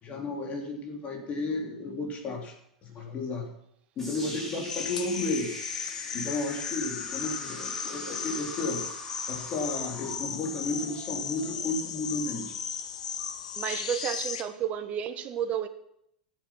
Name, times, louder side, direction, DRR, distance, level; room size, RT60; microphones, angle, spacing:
voice 1, 0.0-2.5 2.8-3.5 4.0-5.5 6.1-8.8 9.3-12.6, left 2 dB, 35° left, 1 dB, 3.7 m, -33 dB
sound 1, 4.0-12.0, left 1 dB, 10° left, 5.9 m, -43 dB
sound 2, 4.7-14.4, left 7 dB, 70° left, 1.2 m, -36 dB
voice 2, 13.5-15.7, right 9 dB, 35° right, 8 dB, 1.3 m, -31 dB
15.0 x 8.1 x 6.0 m, 0.74 s
figure-of-eight pair, 90°, 4 cm